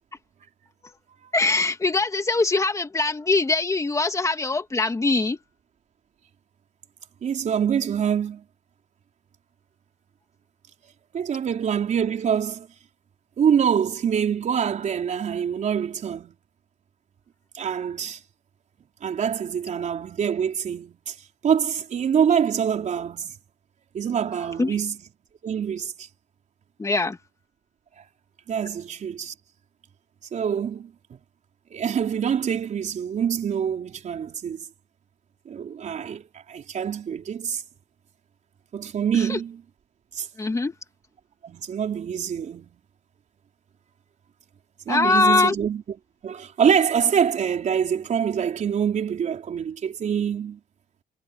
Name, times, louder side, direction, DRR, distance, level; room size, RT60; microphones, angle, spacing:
voice 1, 1.3-5.4 24.6-24.7 26.8-27.2 39.3-39.4 40.4-40.7 44.9-45.5, left 3 dB, 20° left, 2.3 m, -22 dB
voice 2, 7.2-8.4 11.1-12.7 13.4-16.3 17.5-18.2 19.0-21.1 21.4-23.3 23.9-25.0 25.4-26.1 28.5-29.3 30.3-30.9 31.7-34.7 35.5-37.6 38.7-39.6 40.1-40.3 41.4-42.8 44.9-45.8 46.2-50.6, right 8 dB, 45° right, 4.4 m, -25 dB
cardioid pair, 110°, 17 cm